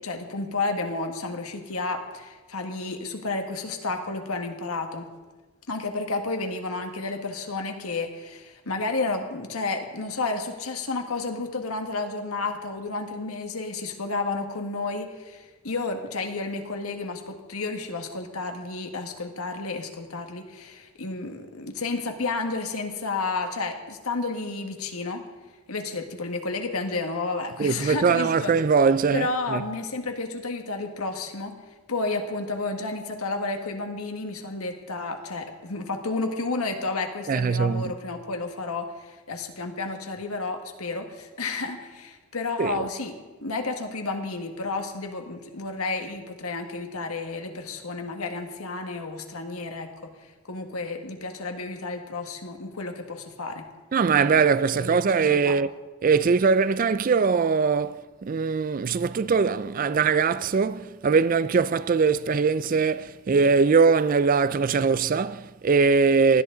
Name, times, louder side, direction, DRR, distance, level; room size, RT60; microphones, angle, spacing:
voice 1, 0.0-5.1 5.7-25.2 25.7-28.5 29.1-31.5 31.9-49.9 50.5-53.7 54.7-55.6 66.3-66.4, left 3 dB, 80° left, 1.7 m, -31 dB
voice 2, 27.6-29.6 37.3-37.9 42.6-42.9 53.9-55.7 56.0-66.4, right 5 dB, 40° right, 0.3 m, -21 dB
19.5 x 13.5 x 3.9 m
head